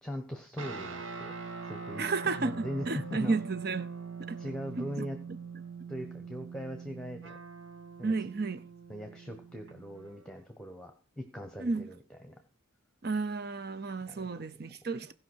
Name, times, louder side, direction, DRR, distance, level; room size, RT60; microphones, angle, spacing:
voice 1, 0.0-1.3 1.6-3.3 4.4-5.2 5.9-7.4 8.0-8.1 8.9-12.3 14.1-14.3, equal, 5° left, 1.2 m, -40 dB
sound 1, 0.6-10.3, right 5 dB, 80° right, 2.0 m, -43 dB
voice 2, 2.0-3.9 4.3-4.4 4.8-5.1 8.0-8.6 11.6-11.9 13.0-15.1, right 4 dB, 50° right, 0.6 m, -32 dB
16.5 x 5.7 x 6.3 m
head